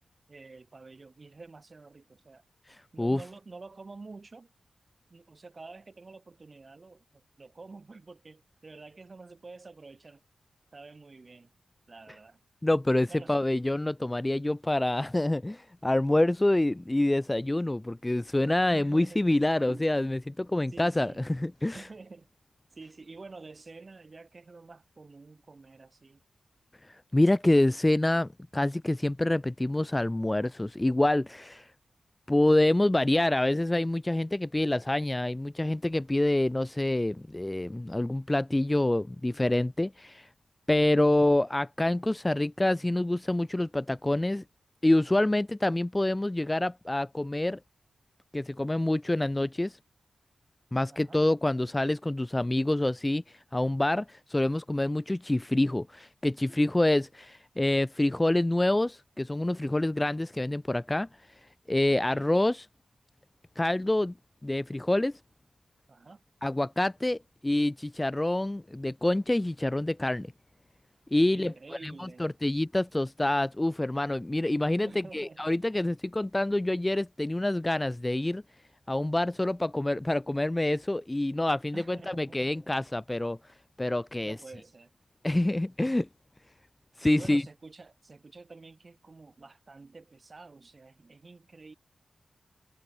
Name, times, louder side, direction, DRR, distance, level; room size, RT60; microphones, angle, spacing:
voice 1, 0.3-2.4 2.9-4.5 5.1-10.2 10.7-11.5 11.9-12.4 13.1-13.4 18.7-19.3 19.6-19.9 20.7-21.2 21.7-22.3 22.8-26.2 50.9-51.2 62.0-62.3 65.9-66.2 71.3-72.4 74.8-75.5 81.7-82.4 84.2-84.9 87.1-91.8, right 3 dB, 40° right, 7.6 m, -48 dB
voice 2, 12.6-21.8 27.1-31.7 32.3-40.3 40.7-44.4 44.8-47.6 48.3-49.8 50.7-53.2 53.5-61.1 61.7-62.7 63.6-64.1 64.4-65.1 66.4-70.3 71.1-71.5 71.8-78.4 78.9-83.4 83.8-84.4 85.2-86.1 87.0-87.4, left 1 dB, 15° left, 0.5 m, -27 dB
wide cardioid pair, 100°, 0 cm